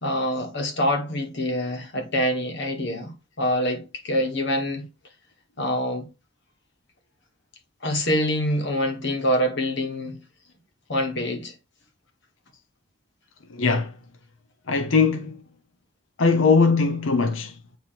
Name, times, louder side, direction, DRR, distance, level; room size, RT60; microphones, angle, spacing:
voice 1, 0.0-4.9 5.6-6.1 7.8-10.2 10.9-11.5, equal, 65° left, 1.6 m, -25 dB
voice 2, 13.5-13.9 14.7-15.4 16.2-17.5, left 4 dB, 85° left, 0.7 m, -20 dB
8.5 x 3.0 x 5.8 m
head